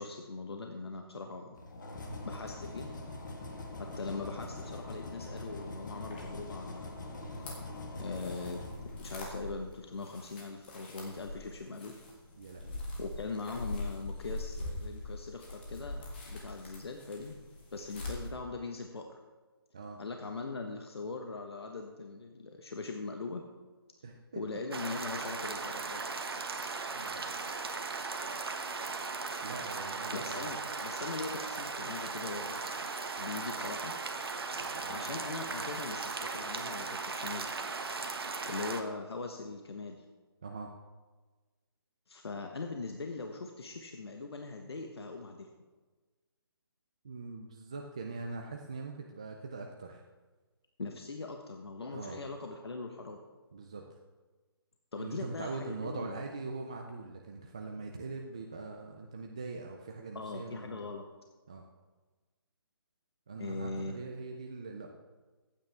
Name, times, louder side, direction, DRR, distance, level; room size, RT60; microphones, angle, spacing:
voice 1, 0.0-1.6 2.2-2.9 3.8-7.0 8.0-8.6 9.0-12.0 13.0-17.3 17.7-19.2 20.0-23.4 24.3-26.2 27.2-27.5 30.1-32.6 33.2-33.9 34.9-37.5 38.5-40.0 42.1-45.5 50.8-53.2 54.9-56.2 60.1-61.0 63.4-63.9, left 3 dB, 80° left, 3 dB, 1.3 m, -41 dB
sound 1, 1.6-9.5, left 2 dB, 50° left, 1.8 m, -43 dB
sound 2, 6.1-18.3, left 2 dB, 25° left, 1.8 m, -43 dB
voice 2, 12.4-12.8 19.7-20.0 24.0-24.6 26.9-27.3 29.4-30.5 34.7-35.2 40.4-40.7 47.0-50.0 51.9-52.2 53.5-53.8 55.0-60.9 61.5-61.6 63.3-64.9, right 3 dB, 15° right, 2 dB, 0.3 m, -42 dB
sound 3, 24.7-38.8, right 4 dB, 70° right, 1.3 m, -37 dB
15.0 x 8.9 x 3.5 m, 1.3 s
hypercardioid pair, 175°, 13 cm